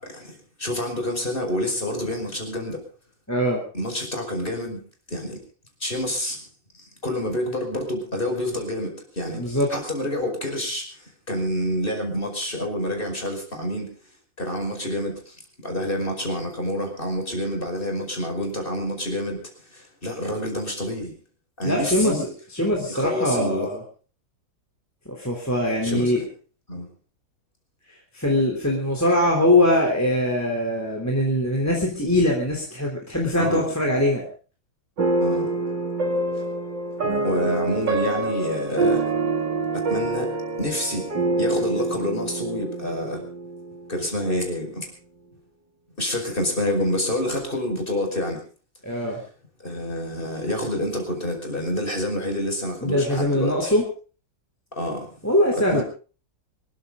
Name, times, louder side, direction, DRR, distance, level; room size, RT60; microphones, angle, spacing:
voice 1, 0.0-2.8 3.7-4.8 5.1-5.4 5.8-6.4 6.7-13.9 14.4-19.4 19.7-21.1 21.6-22.3 22.9-23.7 25.8-26.1 26.7-26.9 33.4-33.7 35.2-35.5 37.2-39.0 39.7-40.3 40.6-41.1 41.4-43.2 43.9-44.9 46.0-48.4 49.6-53.7 54.8-55.1 55.7-55.8, left 1 dB, 25° left, 3 dB, 5.4 m, -28 dB
voice 2, 3.3-3.6 9.3-9.7 21.6-23.8 25.1-26.2 28.1-34.2 48.8-49.2 52.8-53.9 55.2-55.8, left 1 dB, 10° left, -1 dB, 3.4 m, -22 dB
sound 1, 35.0-44.1, right 2 dB, 70° right, 3.6 m, -26 dB
25.5 x 13.5 x 3.8 m, 0.38 s
omnidirectional pair, 2.0 m